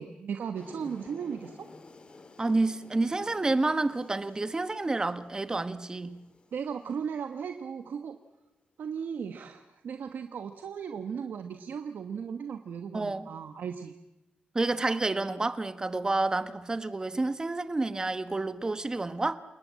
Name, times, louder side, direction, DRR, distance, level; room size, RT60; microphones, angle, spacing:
voice 1, 0.0-1.7 6.5-8.2 8.8-13.9, right 7 dB, 70° right, 7 dB, 1.3 m, -36 dB
sound 1, 0.5-7.5, left 3 dB, 30° left, 2.1 m, -52 dB
voice 2, 2.4-6.2 12.9-13.3 14.5-19.4, right 2 dB, 20° right, 12 dB, 1.2 m, -29 dB
28.5 x 19.5 x 7.6 m, 0.97 s
wide cardioid pair, 130°, 3 cm